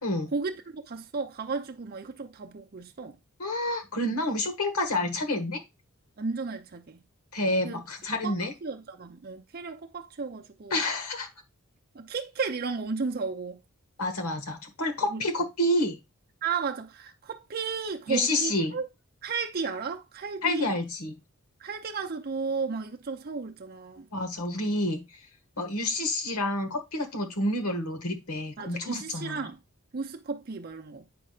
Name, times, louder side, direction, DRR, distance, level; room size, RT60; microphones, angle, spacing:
voice 1, 0.3-3.2 6.2-7.0 7.6-7.8 8.1-10.8 11.9-13.6 15.0-15.2 16.4-18.9 19.2-20.8 21.6-24.1 28.6-29.6 29.9-31.1, right 4 dB, 45° right, 0.5 m, -34 dB
voice 2, 3.4-5.6 7.3-8.5 10.7-11.3 14.0-16.0 18.1-18.7 20.4-21.1 24.1-25.0 25.6-29.5, left 1 dB, 85° left, 1.5 m, -29 dB
8.5 x 5.6 x 2.4 m
head